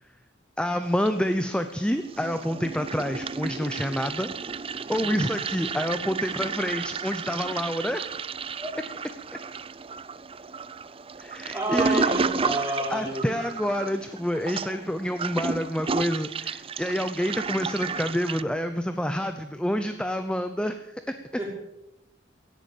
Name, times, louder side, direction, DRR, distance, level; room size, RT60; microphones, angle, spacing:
voice 1, 0.6-4.3 4.9-8.0 11.2-12.1 12.9-21.1, equal, 5° left, 8 dB, 0.7 m, -28 dB
Toilet flush, 0.8-1.7 1.9-18.4, right 5 dB, 30° right, 0.5 m, -32 dB
voice 2, 11.5-13.3 21.4-21.6, right 1 dB, 10° right, -2 dB, 5.2 m, -30 dB
17.0 x 11.0 x 7.1 m, 0.93 s
head